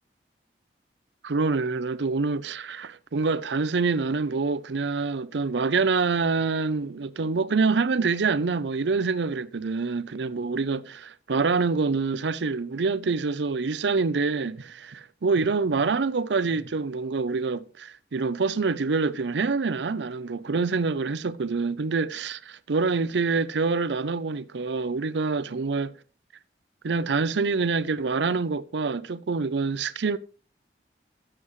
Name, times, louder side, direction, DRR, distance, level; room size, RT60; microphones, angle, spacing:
voice 1, 1.2-25.9 26.8-30.2, right 4 dB, 90° right, 0.6 m, -26 dB
12.5 x 7.7 x 3.1 m
head